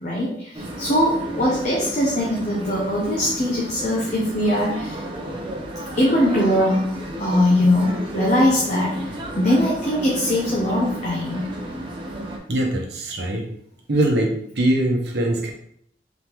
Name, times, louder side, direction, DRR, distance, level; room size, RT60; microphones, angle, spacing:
voice 1, 0.0-5.0 5.9-11.6, left 1 dB, 45° left, -3 dB, 0.7 m, -21 dB
sound 1, 0.5-12.4, right 1 dB, 30° right, 0.7 m, -33 dB
voice 2, 12.5-13.5 13.9-15.5, right 1 dB, 70° right, 0 dB, 0.9 m, -22 dB
3.9 x 3.6 x 3.0 m, 0.69 s
head